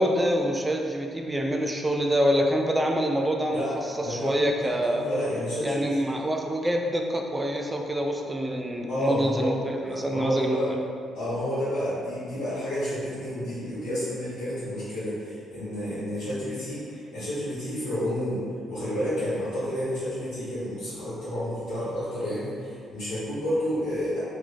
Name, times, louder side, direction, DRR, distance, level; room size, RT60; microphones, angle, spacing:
voice 1, 0.0-3.6 4.0-5.0 5.6-10.8, equal, 15° right, 2 dB, 0.4 m, -26 dB
voice 2, 4.0-6.1 8.9-9.5 9.9-10.7 11.1-24.2, equal, 85° left, -13 dB, 1.4 m, -30 dB
3.0 x 2.4 x 2.4 m, 2.2 s
hypercardioid pair, 50°, 0 cm